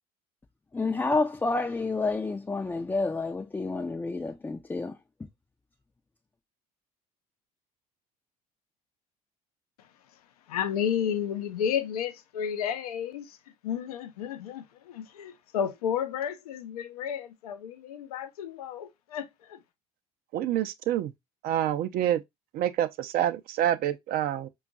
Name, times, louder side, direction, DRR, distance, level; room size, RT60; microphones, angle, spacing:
voice 1, 0.7-5.0, left 3 dB, 10° left, 0.4 m, -29 dB
voice 2, 10.5-13.4 13.6-19.6, left 8 dB, 80° left, 0.6 m, -32 dB
voice 3, 20.3-21.1 21.4-22.2 22.5-24.5, right 11 dB, 50° right, 0.5 m, -27 dB
5.1 x 2.3 x 2.3 m
hypercardioid pair, 65°, 19 cm